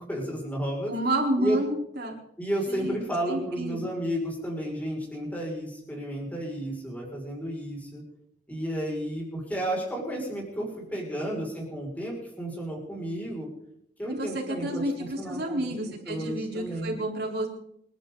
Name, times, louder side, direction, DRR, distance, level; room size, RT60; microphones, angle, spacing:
voice 1, 0.1-0.9 1.4-1.6 2.4-8.0 8.5-13.5 14.0-15.7 16.1-16.9, right 1 dB, 10° left, -3 dB, 6.3 m, -32 dB
voice 2, 0.9-2.1 2.7-3.0 3.3-4.0 14.0-17.5, right 1 dB, 60° right, 0 dB, 4.6 m, -30 dB
28.0 x 11.5 x 4.1 m, 0.75 s
head